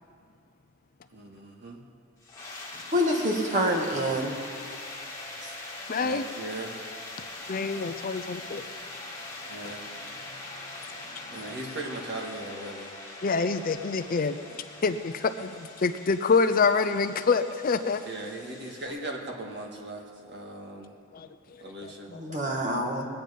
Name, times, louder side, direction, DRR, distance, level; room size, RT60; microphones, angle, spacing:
voice 1, 1.1-1.8 6.0-6.8 9.5-9.9 11.3-12.9 18.1-20.9 21.6-22.1, right 2 dB, 50° right, 1 dB, 1.9 m, -38 dB
sound 1, 2.2-18.9, left 2 dB, 15° left, 1.8 m, -42 dB
voice 2, 2.9-4.4 5.4-5.5 22.1-23.1, equal, 35° right, 1 dB, 1.8 m, -27 dB
voice 3, 5.9-6.2 7.5-8.6 11.1-11.2 13.2-14.4 14.8-18.0 21.1-22.5, left 4 dB, 40° left, 10 dB, 0.5 m, -27 dB
21.0 x 8.9 x 5.3 m, 2.3 s
head